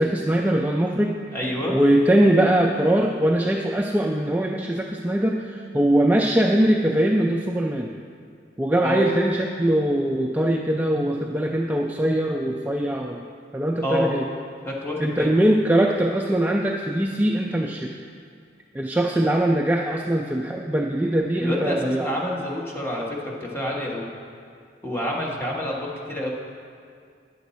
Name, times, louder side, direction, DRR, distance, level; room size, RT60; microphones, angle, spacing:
voice 1, 0.0-1.2 1.7-7.9 8.6-13.2 13.5-14.3 15.0-17.9 18.7-22.1, right 1 dB, 10° right, 0 dB, 0.3 m, -21 dB
voice 2, 1.3-1.8 8.8-9.1 13.8-14.1 14.6-15.4 21.3-24.1 24.8-26.3, left 1 dB, 15° left, -3 dB, 1.2 m, -28 dB
9.2 x 6.9 x 4.1 m, 2.2 s
head